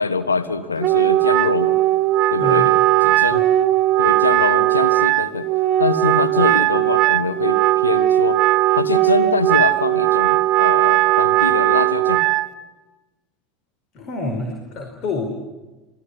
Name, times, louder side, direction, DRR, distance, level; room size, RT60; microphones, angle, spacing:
voice 1, 0.0-1.8 2.3-2.7 3.0-3.5 4.0-5.5 5.8-8.4 8.7-12.3, left 4 dB, 85° left, 11 dB, 1.3 m, -24 dB
Wind instrument woodwind instrument, 0.8-12.5, right 15 dB, 45° right, 1.5 m, -17 dB
voice 2, 13.9-15.3, left 3 dB, 45° left, 4 dB, 4.9 m, -28 dB
27.5 x 21.0 x 10.0 m, 1.1 s
figure-of-eight pair, 75°, 0 cm